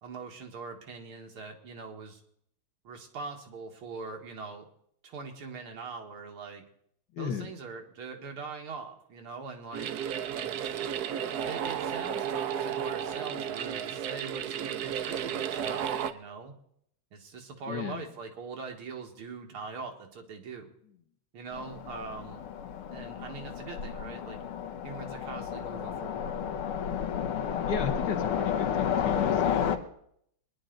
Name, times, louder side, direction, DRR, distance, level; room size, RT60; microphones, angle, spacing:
voice 1, 0.0-2.2 2.8-4.7 5.0-6.7 7.2-9.9 10.4-10.8 11.4-16.5 17.1-20.7 21.3-22.4 22.9-24.4 24.8-26.4, right 4 dB, 90° right, 3 dB, 2.6 m, -42 dB
voice 2, 7.1-7.5 17.7-18.1 27.7-29.8, left 7 dB, 60° left, 6 dB, 1.7 m, -35 dB
sound 1, 9.7-16.1, right 8 dB, 70° right, 0.9 m, -33 dB
Train, 21.5-29.8, left 8 dB, 85° left, 1.9 m, -31 dB
22.5 x 10.5 x 3.9 m, 0.70 s
omnidirectional pair, 2.3 m